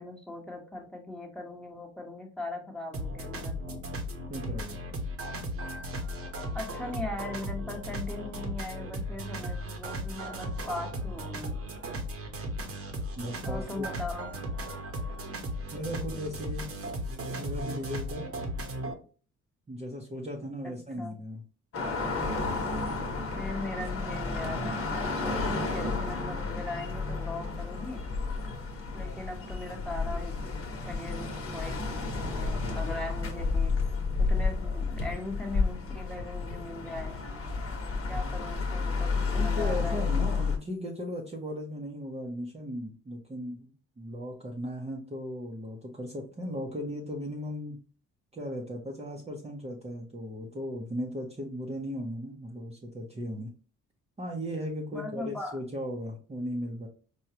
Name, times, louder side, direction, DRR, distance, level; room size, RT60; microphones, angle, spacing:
voice 1, 0.0-3.8 6.5-11.7 13.4-14.3 20.6-21.1 23.4-28.0 28.9-30.5 30.9-31.9 32.2-33.7 34.2-37.2 38.1-40.4 54.9-55.6, left 2 dB, 5° left, 0 dB, 1.2 m, -39 dB
sound 1, 2.9-18.9, equal, 50° right, 1.0 m, -36 dB
voice 2, 4.3-4.8 13.2-13.9 15.7-16.7 17.4-18.3 19.7-21.4 39.3-43.7 44.0-47.8 48.3-53.5 54.2-56.9, equal, 20° right, -1 dB, 0.8 m, -37 dB
sound 2, 21.7-40.6, left 4 dB, 50° left, 1.1 m, -31 dB
4.6 x 2.3 x 2.8 m, 0.38 s
cardioid pair, 90°, 30 cm